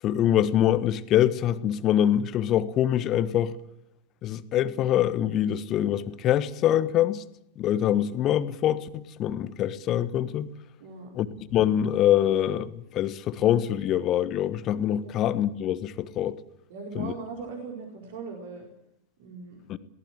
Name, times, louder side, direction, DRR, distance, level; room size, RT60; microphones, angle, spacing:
voice 1, 0.0-3.5 4.2-7.2 7.6-10.5 11.1-11.3 11.5-16.4 16.9-17.1 19.7-19.8, left 11 dB, 35° left, 14 dB, 1.4 m, -24 dB
voice 2, 10.8-11.1 16.7-18.7 19.2-19.6, right 5 dB, 55° right, 2 dB, 4.7 m, -39 dB
22.5 x 18.5 x 7.6 m, 0.77 s
figure-of-eight pair, 90°, 0 cm